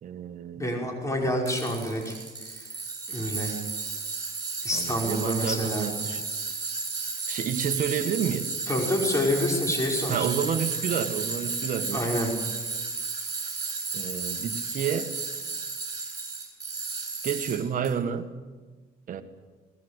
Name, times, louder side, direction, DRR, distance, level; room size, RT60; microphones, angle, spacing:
voice 1, 0.0-0.8 1.2-1.3 4.7-6.2 7.3-8.6 10.1-12.1 13.9-15.2 17.2-18.3 19.1-19.2, right 8 dB, 50° right, 8 dB, 1.8 m, -30 dB
voice 2, 0.5-2.2 2.5-2.7 3.1-3.5 4.6-5.9 8.7-10.3 11.9-12.3, left 1 dB, 20° left, 0 dB, 5.5 m, -28 dB
Tools, 1.5-17.9, right 4 dB, 25° right, 7.8 m, -33 dB
21.0 x 19.5 x 8.4 m, 1.3 s
cardioid pair, 110°, 17 cm